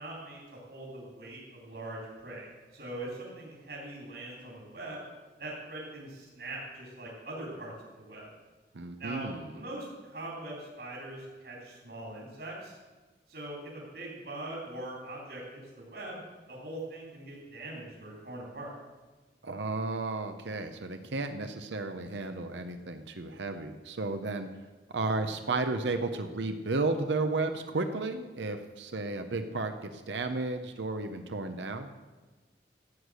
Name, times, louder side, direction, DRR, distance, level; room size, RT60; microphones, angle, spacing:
voice 1, 0.0-5.0 5.4-8.3 9.0-12.8 13.3-16.2 16.5-18.7, right 1 dB, 65° right, -3 dB, 3.6 m, -42 dB
voice 2, 8.7-9.4 19.4-24.5 24.9-31.9, right 3 dB, 85° right, 7 dB, 0.9 m, -33 dB
14.5 x 8.4 x 6.3 m, 1.3 s
head